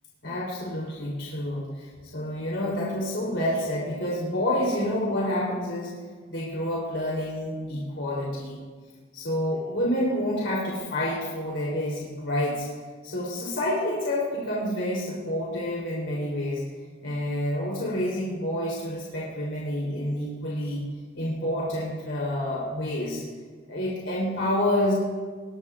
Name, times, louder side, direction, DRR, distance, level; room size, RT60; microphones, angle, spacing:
voice 1, 0.2-5.9 6.3-8.6 9.1-12.7 13.0-16.7 17.0-20.9 21.1-23.2 23.7-24.9, left 1 dB, 65° left, -5 dB, 3.2 m, -28 dB
20.5 x 19.0 x 2.4 m, 1.5 s
head